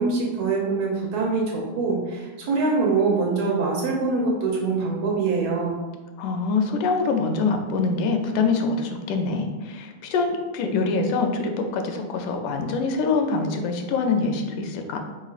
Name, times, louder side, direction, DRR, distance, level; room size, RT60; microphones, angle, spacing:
voice 1, 0.0-5.7, right 4 dB, 75° right, -2 dB, 1.7 m, -24 dB
voice 2, 6.2-15.0, left 4 dB, 85° left, 4 dB, 2.0 m, -24 dB
5.0 x 4.2 x 2.4 m, 1.2 s
omnidirectional pair, 3.4 m